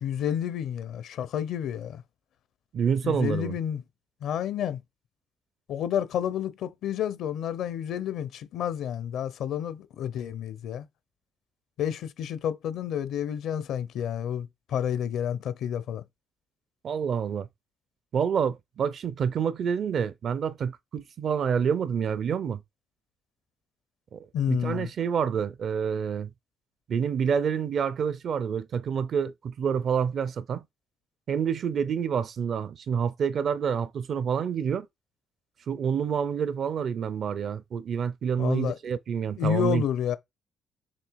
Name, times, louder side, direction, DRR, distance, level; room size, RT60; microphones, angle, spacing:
voice 1, 0.0-2.0 3.0-3.8 4.2-4.8 5.7-10.8 11.8-16.0 24.3-24.9 38.4-38.7 39.4-40.2, left 9 dB, 80° left, 0.8 m, -30 dB
voice 2, 2.7-3.5 16.8-17.5 18.1-22.6 24.1-26.3 26.9-30.6 31.3-34.9 35.7-39.8, right 7 dB, 60° right, 0.6 m, -28 dB
7.2 x 3.0 x 4.7 m
cardioid pair, 90°, 0 cm